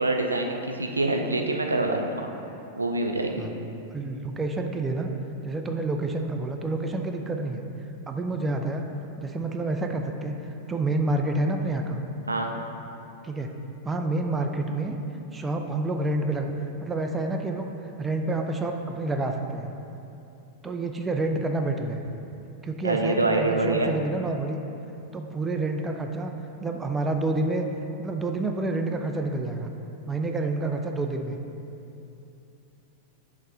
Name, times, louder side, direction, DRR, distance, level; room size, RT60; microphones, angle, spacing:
voice 1, 0.0-2.3 2.8-3.5 12.3-12.5 22.8-23.9, right 2 dB, 80° right, 3 dB, 0.4 m, -25 dB
voice 2, 3.9-5.1 5.4-7.6 8.1-8.9 9.2-10.4 10.7-12.0 13.2-13.5 13.9-15.0 15.3-16.5 16.8-17.7 18.0-19.7 20.6-22.0 22.6-24.6 25.1-26.3 26.6-27.7 28.0-29.7 30.1-31.4, right 2 dB, 15° right, 3 dB, 0.4 m, -28 dB
6.4 x 3.1 x 5.1 m, 2.8 s
figure-of-eight pair, 95°, 0 cm